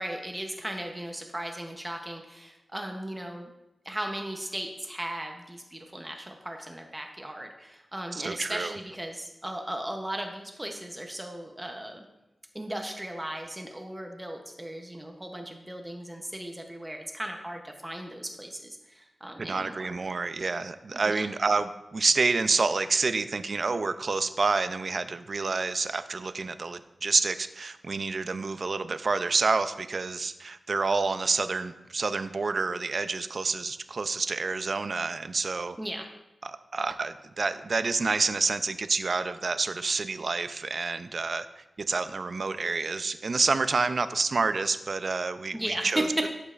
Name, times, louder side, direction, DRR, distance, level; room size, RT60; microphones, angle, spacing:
voice 1, 0.0-3.5 3.8-12.0 12.5-19.9 20.9-21.3 35.8-36.1 45.5-46.3, right 1 dB, 15° right, 3 dB, 0.7 m, -36 dB
voice 2, 8.1-8.7 19.4-35.8 36.4-46.3, right 4 dB, 55° right, 11 dB, 0.4 m, -28 dB
12.0 x 5.3 x 2.5 m, 0.99 s
wide cardioid pair, 90°, 0 cm